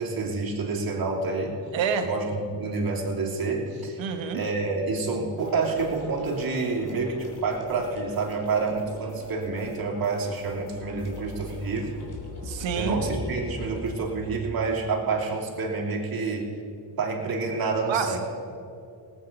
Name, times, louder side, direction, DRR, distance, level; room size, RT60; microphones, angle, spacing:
voice 1, 0.0-1.5 2.0-4.0 4.3-11.9 12.7-16.5 17.0-18.2, right 4 dB, 50° right, -2 dB, 3.1 m, -28 dB
voice 2, 1.7-2.1 4.0-4.4 12.4-13.0 17.9-18.2, right 7 dB, 80° right, 6 dB, 1.5 m, -27 dB
sound 1, 5.4-13.9, left 2 dB, 40° left, 3.1 m, -41 dB
18.5 x 8.6 x 5.3 m, 2.8 s
cardioid pair, 70°, 46 cm